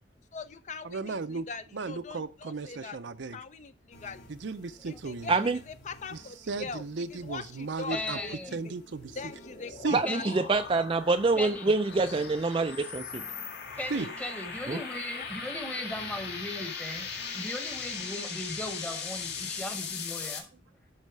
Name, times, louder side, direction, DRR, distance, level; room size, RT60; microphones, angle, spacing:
voice 1, 0.3-3.0 3.3-4.2 4.8-6.8 7.1-8.8 9.1-10.2 15.2-15.3, left 4 dB, 40° left, 0.5 m, -41 dB
voice 2, 0.8-1.5 1.7-3.4 4.3-5.3 6.5-8.2 8.5-9.1 9.8-10.0 13.9-14.1, right 3 dB, 70° right, 0.6 m, -35 dB
sound 1, 3.9-19.9, equal, 80° left, 2.7 m, -55 dB
voice 3, 5.3-5.6 9.9-13.2 14.7-14.8, right 3 dB, 25° right, 0.3 m, -26 dB
voice 4, 7.9-8.6 10.0-10.4 11.4-11.7 13.8-20.5, left 1 dB, 10° left, 1.0 m, -37 dB
sound 2, 8.8-20.4, left 5 dB, 60° left, 1.9 m, -39 dB
12.0 x 4.2 x 4.7 m
head